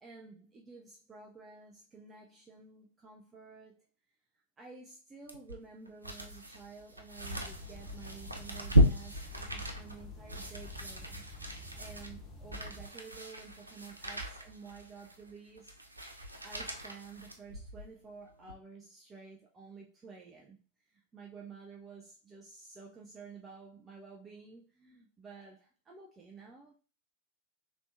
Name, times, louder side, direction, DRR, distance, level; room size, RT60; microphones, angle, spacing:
voice 1, 0.0-3.9 4.6-11.2 11.8-15.8 16.4-20.6 20.9-26.7, right 5 dB, 20° right, 0.5 m, -51 dB
sound 1, 5.3-17.9 18.4-18.5, equal, 85° right, 0.4 m, -34 dB
sound 2, 7.2-12.9, left 2 dB, 25° left, 0.8 m, -49 dB
3.4 x 3.0 x 2.5 m
figure-of-eight pair, 90°, 0 cm